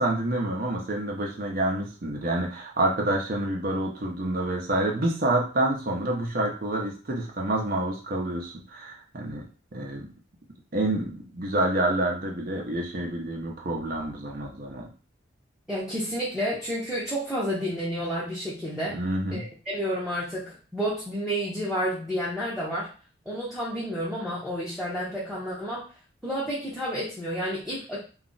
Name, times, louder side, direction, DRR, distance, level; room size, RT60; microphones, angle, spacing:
voice 1, 0.0-9.4 9.7-10.1 10.7-14.9 18.9-19.5, right 1 dB, 45° right, 0 dB, 0.6 m, -28 dB
voice 2, 15.7-19.0 19.3-22.9 23.3-25.8 26.2-28.0, equal, ahead, -9 dB, 0.6 m, -30 dB
2.4 x 2.0 x 3.8 m, 0.36 s
head